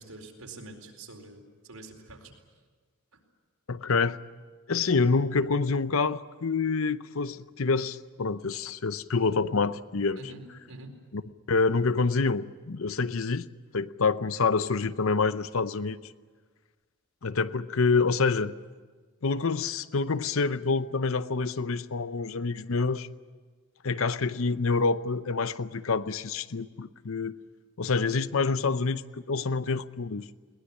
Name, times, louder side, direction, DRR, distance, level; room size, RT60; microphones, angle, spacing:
voice 1, 0.0-2.3 10.2-10.4 10.7-10.9, right 2 dB, 90° right, 2 dB, 4.4 m, -45 dB
voice 2, 3.7-4.2 4.7-10.2 11.1-11.2 11.5-13.5 13.7-16.0 17.2-18.5 19.2-23.1 23.8-27.3 27.8-30.3, left 4 dB, 65° left, 14 dB, 0.7 m, -27 dB
21.5 x 20.0 x 9.9 m, 1.5 s
head